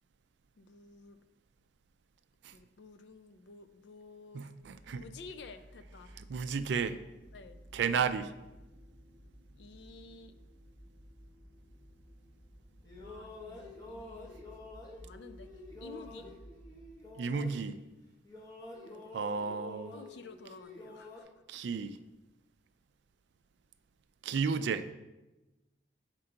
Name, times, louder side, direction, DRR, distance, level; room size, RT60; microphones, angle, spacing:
voice 1, 0.6-1.2 2.5-4.5 4.9-6.2 7.3-7.6 9.6-10.3 13.0-14.3 15.0-16.4 18.9-19.2 19.9-21.3 21.5-21.7, left 4 dB, 70° left, 10 dB, 0.4 m, -52 dB
voice 2, 4.3-5.0 6.2-7.0 7.7-8.3 17.2-17.8 19.1-19.9 21.5-22.0 24.2-24.9, right 5 dB, 70° right, 11 dB, 0.3 m, -33 dB
sound 1, 4.6-16.9, equal, 10° right, 1.1 m, -55 dB
sound 2, 12.6-18.0 18.2-21.2, left 2 dB, 20° left, 0.9 m, -49 dB
5.7 x 4.4 x 3.8 m, 1.0 s
head